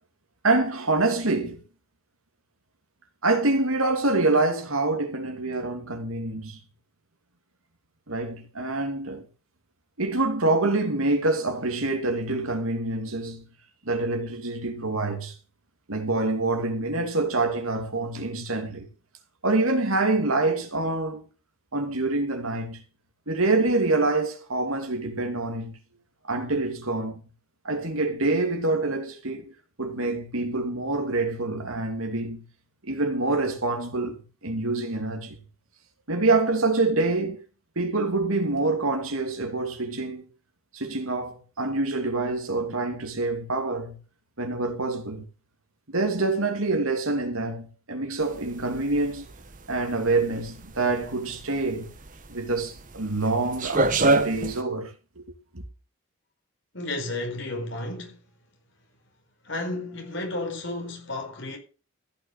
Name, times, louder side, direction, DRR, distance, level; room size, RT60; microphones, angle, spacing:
voice 1, 0.4-1.6 3.2-6.6 8.1-9.3 10.0-13.4 13.8-15.3 15.9-18.9 19.4-21.3 21.7-22.8 23.3-25.8 26.2-27.2 27.6-32.4 32.8-35.4 36.1-37.4 37.8-40.3 40.7-44.0 44.4-45.3 45.9-49.3 49.7-51.9 52.3-55.2 55.5-55.6, right 2 dB, 75° right, 2.8 m, -26 dB
sound 1, 48.2-54.6, right 2 dB, 35° right, 1.2 m, -27 dB
voice 2, 56.7-58.3 59.4-61.6, left 2 dB, 55° left, 4.5 m, -32 dB
15.0 x 6.5 x 6.6 m
head